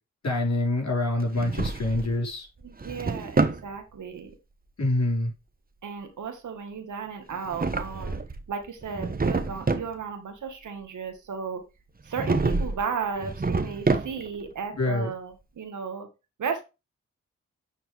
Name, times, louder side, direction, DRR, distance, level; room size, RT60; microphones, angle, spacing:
voice 1, 0.2-2.5 4.8-5.3 14.8-15.1, left 2 dB, 60° left, 4.8 m, -26 dB
Drawer open or close, 1.2-2.2 2.6-3.7 7.3-8.4 8.8-9.9 12.1-12.8 13.2-14.4, right 3 dB, 30° right, 1.1 m, -27 dB
voice 2, 2.6-4.3 5.8-8.2 8.5-11.6 12.0-16.1 16.4-16.6, right 6 dB, 80° right, 1.8 m, -34 dB
10.0 x 4.5 x 3.4 m
supercardioid pair, 45°, 30 cm